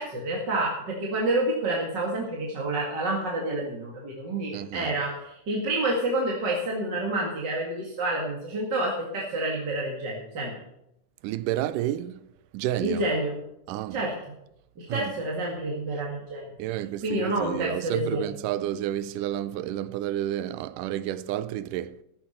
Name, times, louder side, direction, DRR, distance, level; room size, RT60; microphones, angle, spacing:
voice 1, 0.0-10.5 12.8-13.4 13.9-14.1 14.8-16.4 17.0-18.2, right 2 dB, 35° right, 2.2 m, -28 dB
voice 2, 4.5-5.0 11.2-12.3 12.5-13.1 13.7-14.0 14.9-15.1 16.6-22.0, right 12 dB, 80° right, 2.2 m, -30 dB
14.5 x 10.5 x 4.4 m
omnidirectional pair, 3.8 m